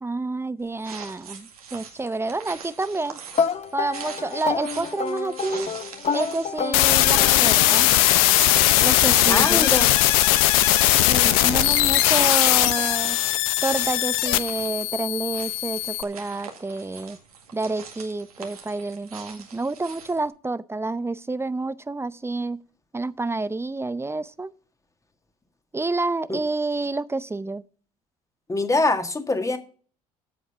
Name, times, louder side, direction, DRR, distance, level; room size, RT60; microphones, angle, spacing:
voice 1, 0.0-3.2 3.7-5.7 6.1-7.9 8.8-9.7 11.1-13.2 13.6-17.2 17.5-22.6 22.9-24.5 25.7-27.6, right 3 dB, 15° right, 0.6 m, -29 dB
sound 1, 0.6-20.3, right 6 dB, 90° right, 1.9 m, -42 dB
sound 2, 3.3-8.0, left 6 dB, 35° left, 1.1 m, -29 dB
sound 3, 6.7-16.0, left 14 dB, 70° left, 0.8 m, -19 dB
voice 2, 9.3-9.9 26.3-26.4 28.5-29.6, left 2 dB, 15° left, 1.8 m, -23 dB
14.5 x 5.0 x 5.7 m
hypercardioid pair, 65°, 19 cm